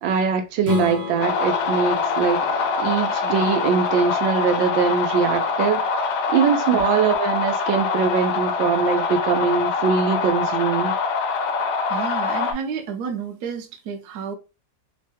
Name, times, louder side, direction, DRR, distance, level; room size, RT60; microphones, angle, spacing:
voice 1, 0.0-5.8 6.3-11.0, right 6 dB, 85° right, 1.3 m, -22 dB
Strum, 0.6-5.8, left 4 dB, 30° right, 0.6 m, -34 dB
sound 1, 1.2-12.5, left 5 dB, 75° left, 1.2 m, -24 dB
voice 2, 11.9-14.4, right 6 dB, 65° right, 1.1 m, -31 dB
3.7 x 2.2 x 2.7 m
omnidirectional pair, 2.0 m